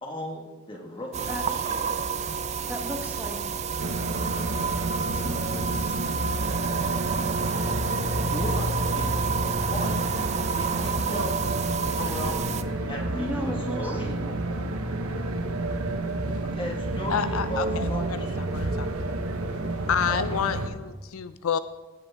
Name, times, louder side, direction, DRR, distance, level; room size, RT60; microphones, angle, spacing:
voice 1, 0.0-1.8 8.3-9.2 9.6-9.9 10.6-11.4 11.9-14.2 16.2-18.5 20.1-20.4, equal, 25° left, 0 dB, 1.6 m, -36 dB
sound 1, 1.1-12.6, right 6 dB, 30° right, 0.3 m, -30 dB
voice 2, 2.7-3.5 5.0-6.2 13.2-14.0, equal, 10° right, 2 dB, 1.1 m, -35 dB
sound 2, 3.8-20.7, right 2 dB, 80° right, 1.0 m, -30 dB
voice 3, 17.1-18.3 18.5-18.9 19.9-21.6, left 7 dB, 75° left, 12 dB, 0.4 m, -28 dB
16.5 x 7.9 x 3.6 m, 1.2 s
head